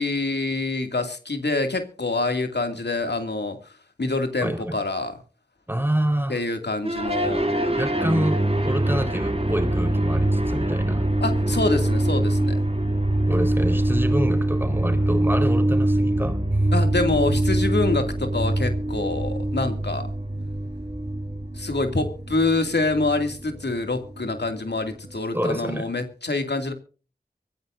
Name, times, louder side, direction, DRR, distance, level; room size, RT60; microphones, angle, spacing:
voice 1, 0.0-3.7 4.0-5.1 6.3-7.4 11.2-12.6 16.7-20.1 21.5-26.7, left 2 dB, 85° left, 2.4 m, -26 dB
voice 2, 4.4-4.8 5.7-6.4 7.8-11.1 13.3-16.7 25.3-25.9, right 1 dB, 10° right, 4.2 m, -27 dB
sound 1, 6.8-25.2, right 1 dB, 35° right, 2.4 m, -24 dB
24.5 x 15.0 x 2.6 m
wide cardioid pair, 45°, 17 cm